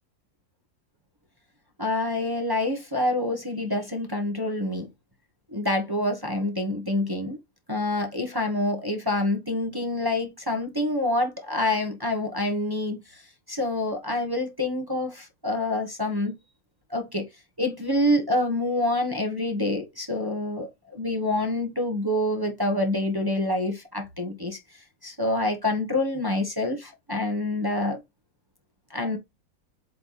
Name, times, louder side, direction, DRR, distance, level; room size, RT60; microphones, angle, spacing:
voice 1, 1.8-4.9 5.5-7.4 7.7-13.2 13.5-16.4 16.9-17.3 17.6-24.6 25.0-28.0 28.9-29.2, left 1 dB, 15° right, 1.1 m, -27 dB
7.9 x 3.3 x 4.2 m
omnidirectional pair, 1.7 m